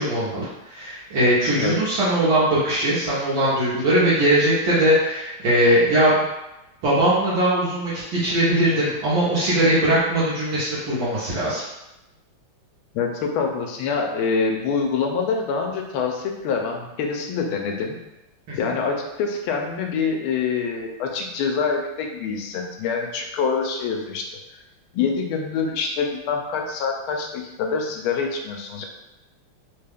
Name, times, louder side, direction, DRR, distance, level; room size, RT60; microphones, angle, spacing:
voice 1, 0.0-6.3 6.8-11.6 18.5-18.6, right 1 dB, 70° right, -9 dB, 1.6 m, -20 dB
voice 2, 12.9-18.0 18.6-24.3 24.9-28.8, left 5 dB, 85° left, 2 dB, 1.4 m, -25 dB
3.9 x 2.2 x 3.4 m, 0.97 s
omnidirectional pair, 2.3 m